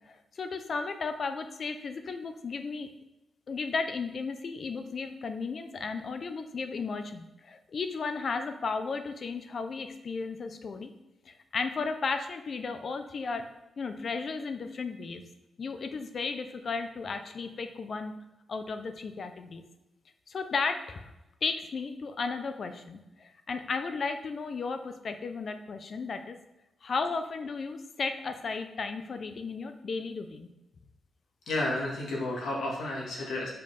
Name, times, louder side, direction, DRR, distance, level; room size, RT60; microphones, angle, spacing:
voice 1, 0.0-2.9 3.5-10.9 11.3-13.5 13.8-15.2 15.6-18.1 18.5-19.6 20.3-21.1 21.4-26.4 26.8-30.5, left 4 dB, 40° left, 8 dB, 0.6 m, -34 dB
voice 2, 31.5-33.5, left 2 dB, 85° left, -3 dB, 2.1 m, -31 dB
5.3 x 4.5 x 5.3 m, 0.96 s
wide cardioid pair, 170°, 0 cm